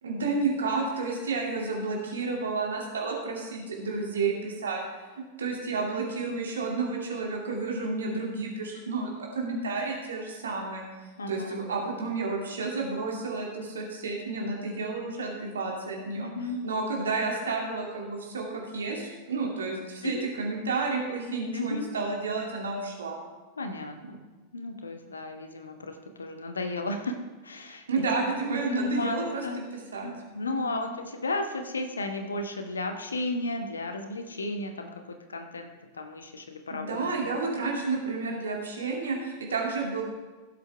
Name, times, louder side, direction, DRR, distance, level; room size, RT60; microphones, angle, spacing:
voice 1, 0.0-4.8 5.2-10.8 11.3-16.3 16.6-23.2 24.0-24.2 27.9-29.4 29.9-30.1 30.5-30.9 36.7-40.0, right 3 dB, 70° right, 0 dB, 2.4 m, -31 dB
voice 2, 11.2-11.6 16.1-16.6 20.0-20.3 21.5-21.9 23.6-24.2 24.5-28.0 28.5-29.6 30.0-37.0, left 2 dB, 75° left, 6 dB, 1.1 m, -34 dB
16.5 x 7.7 x 3.4 m, 1.2 s
figure-of-eight pair, 90°, 0 cm